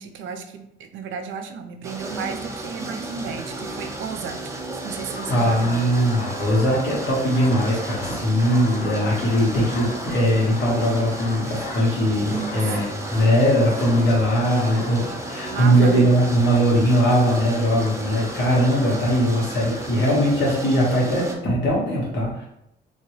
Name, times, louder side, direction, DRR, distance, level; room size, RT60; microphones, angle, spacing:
voice 1, 0.0-4.5 4.8-5.9 12.2-12.9 15.5-16.1, right 6 dB, 80° right, 6 dB, 0.5 m, -33 dB
sound 1, 1.8-21.3, right 2 dB, 15° right, 0.6 m, -34 dB
sound 2, 5.1-20.3, left 3 dB, 40° left, 0.5 m, -39 dB
voice 2, 5.3-22.5, equal, 65° left, -4 dB, 1.5 m, -20 dB
2.9 x 2.8 x 3.1 m, 0.79 s
cardioid pair, 90°, 20 cm